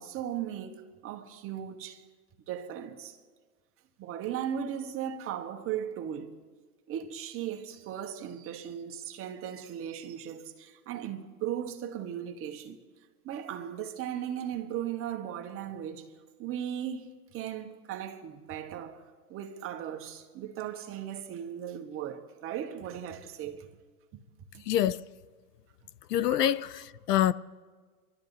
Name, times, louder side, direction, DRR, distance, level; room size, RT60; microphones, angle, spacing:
voice 1, 0.0-2.0 2.5-3.2 4.0-6.4 6.9-12.8 13.2-16.1 16.4-23.7 24.5-24.6 26.3-26.5, right 9 dB, 30° right, 1.3 m, -37 dB
voice 2, 24.6-25.1 26.1-27.3, left 12 dB, 80° left, 0.7 m, -26 dB
26.5 x 12.5 x 4.1 m
hypercardioid pair, 125°, 47 cm